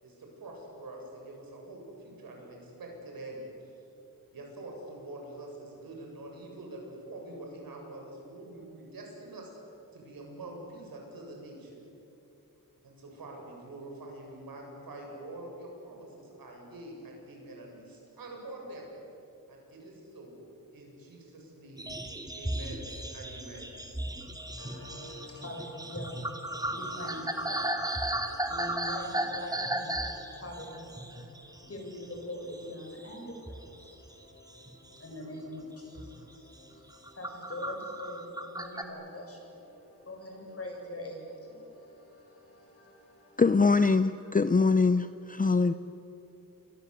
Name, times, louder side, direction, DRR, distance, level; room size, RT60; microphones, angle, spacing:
voice 1, 0.0-3.4 4.3-9.5 9.9-11.8 12.8-18.9 19.5-20.4 20.7-21.9 22.3-23.7, right 2 dB, 85° right, 0 dB, 7.6 m, -45 dB
sound 1, 21.8-32.2 32.5-33.2 33.5-35.0 35.4-35.6 36.0-36.2 36.7-38.8, right 1 dB, 10° right, 2.6 m, -35 dB
voice 2, 24.6-43.4, left 1 dB, 40° left, 1 dB, 7.7 m, -44 dB
voice 3, 43.4-45.7, left 4 dB, 25° left, 12 dB, 0.6 m, -23 dB
28.5 x 23.5 x 8.3 m, 2.9 s
wide cardioid pair, 95°, 34 cm